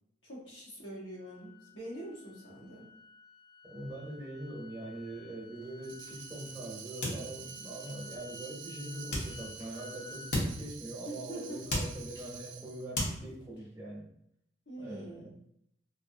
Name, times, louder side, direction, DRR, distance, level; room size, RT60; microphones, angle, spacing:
voice 1, 0.2-2.9 11.0-11.6 14.7-15.3, right 1 dB, 85° left, -5 dB, 1.1 m, -44 dB
sound 1, 1.2-10.3, left 3 dB, 20° left, 0.3 m, -53 dB
voice 2, 3.6-14.1 14.8-15.3, right 1 dB, 15° right, -3 dB, 0.6 m, -43 dB
sound 2, 5.5-6.5 6.8-8.0 9.1-10.0 10.3-11.2 11.5-12.5 13.0-13.7, left 1 dB, 60° left, 0.8 m, -36 dB
Tambourine, 5.8-12.9, right 8 dB, 85° right, 0.3 m, -48 dB
2.7 x 2.5 x 2.6 m, 0.73 s
head